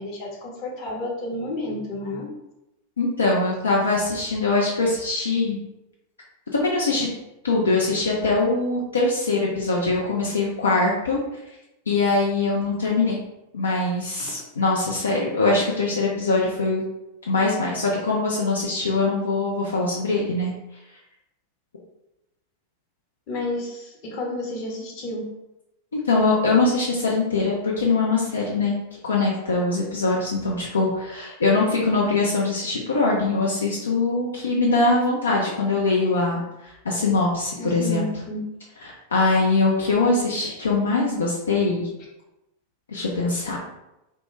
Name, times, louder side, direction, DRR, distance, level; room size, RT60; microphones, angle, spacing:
voice 1, 0.0-2.3 23.3-25.3 37.6-38.4, left 1 dB, 40° left, -2 dB, 0.7 m, -31 dB
voice 2, 3.0-5.6 6.5-7.1 7.4-11.2 11.9-13.2 13.5-16.8 17.3-20.5 25.9-28.8 29.0-36.4 36.8-38.0 39.1-41.9 42.9-43.6, left 3 dB, 70° left, -3 dB, 0.4 m, -22 dB
2.2 x 2.1 x 3.1 m, 0.92 s
figure-of-eight pair, 90°, 0 cm